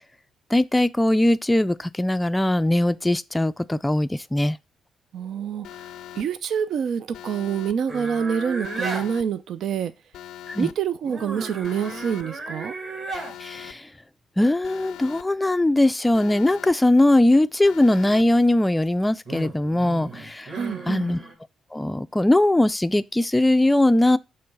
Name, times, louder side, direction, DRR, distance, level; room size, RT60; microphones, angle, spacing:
voice 1, 0.5-4.6 10.5-10.7 13.4-13.9 14.4-20.5 20.8-21.2 21.7-24.2, left 1 dB, 10° left, 0.4 m, -20 dB
voice 2, 5.1-5.7 6.2-9.9 10.6-12.7 20.5-21.2, right 7 dB, 70° right, 0.5 m, -27 dB
Alarm, 5.6-6.2 7.1-7.7 8.6-9.2 10.1-10.7 11.6-12.2 13.1-13.7 14.6-15.2 16.1-16.7 17.6-18.2, left 11 dB, 80° left, 0.4 m, -41 dB
sound 1, 7.9-9.1 11.0-13.4 18.6-21.3, right 3 dB, 45° right, 3.6 m, -34 dB
6.7 x 3.3 x 5.3 m
cardioid pair, 90°, 0 cm